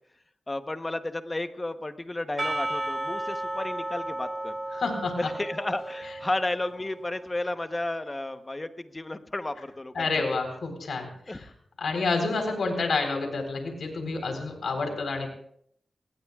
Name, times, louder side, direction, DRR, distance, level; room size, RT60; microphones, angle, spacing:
voice 1, 0.5-4.6 5.2-10.1 11.3-11.5, left 2 dB, 20° left, 9 dB, 1.0 m, -32 dB
Percussion / Church bell, 2.4-7.2, right 1 dB, 30° right, 2.9 m, -34 dB
voice 2, 4.7-5.1 10.0-11.4 11.8-15.3, left 3 dB, 90° left, 4 dB, 4.0 m, -29 dB
25.5 x 19.0 x 2.4 m, 0.66 s
wide cardioid pair, 115°, 0 cm